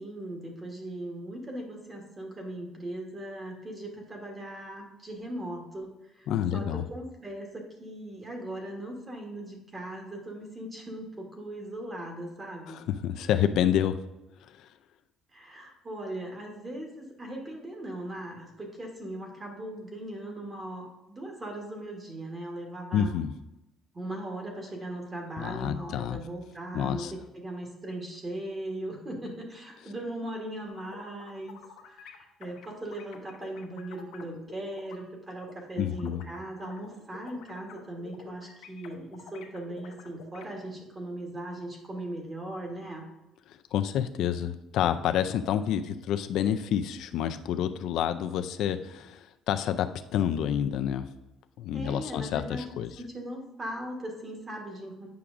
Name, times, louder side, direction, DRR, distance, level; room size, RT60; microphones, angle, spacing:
voice 1, 0.0-12.8 15.3-23.1 23.9-31.6 31.8-43.1 51.7-52.7 53.0-55.1, right 1 dB, 20° right, 1 dB, 1.1 m, -39 dB
voice 2, 6.3-6.8 12.7-14.0 14.4-14.7 22.9-23.3 25.4-26.2 26.7-27.1 35.8-36.2 43.5-51.1 51.6-52.9, left 9 dB, 65° left, 9 dB, 0.3 m, -28 dB
sound 1, 30.7-35.0 35.4-40.5, left 7 dB, 85° left, 0.8 m, -49 dB
8.3 x 5.9 x 2.5 m, 0.97 s
cardioid pair, 160°, 0 cm